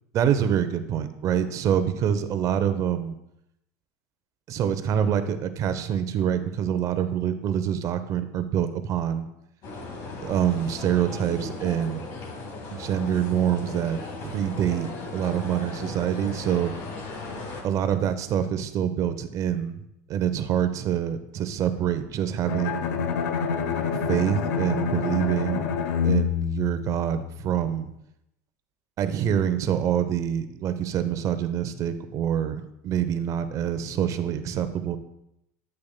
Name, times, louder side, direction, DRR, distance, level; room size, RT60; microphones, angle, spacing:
voice 1, 0.1-3.1 4.5-9.3 10.2-12.0 12.7-16.7 17.6-19.8 20.1-22.8 23.9-25.7 26.0-27.9 29.0-35.0, right 9 dB, 40° right, 11 dB, 0.7 m, -26 dB
sound 1, 9.6-17.6, left 3 dB, 50° left, 1.9 m, -37 dB
Bowed string instrument, 22.5-27.5, left 6 dB, 75° left, 0.9 m, -27 dB
8.5 x 7.9 x 2.2 m, 0.82 s
supercardioid pair, 110°, 8 cm